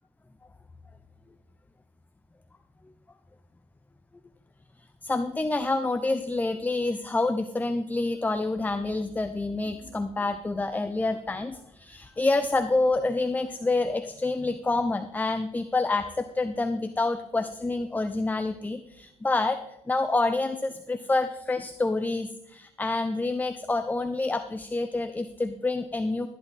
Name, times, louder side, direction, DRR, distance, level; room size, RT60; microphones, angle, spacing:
voice 1, 5.0-26.3, left 2 dB, 10° left, 10 dB, 0.6 m, -27 dB
13.0 x 10.5 x 4.2 m, 0.81 s
supercardioid pair, 85°, 14 cm